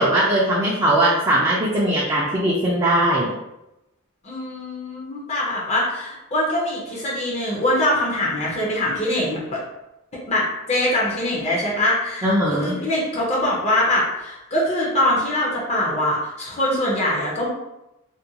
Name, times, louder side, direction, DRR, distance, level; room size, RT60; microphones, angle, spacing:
voice 1, 0.0-3.3 12.2-12.8, right 1 dB, 15° right, -6 dB, 0.3 m, -20 dB
voice 2, 4.2-9.6 10.3-17.5, left 1 dB, 30° left, -4 dB, 0.6 m, -23 dB
2.5 x 2.2 x 2.7 m, 0.92 s
head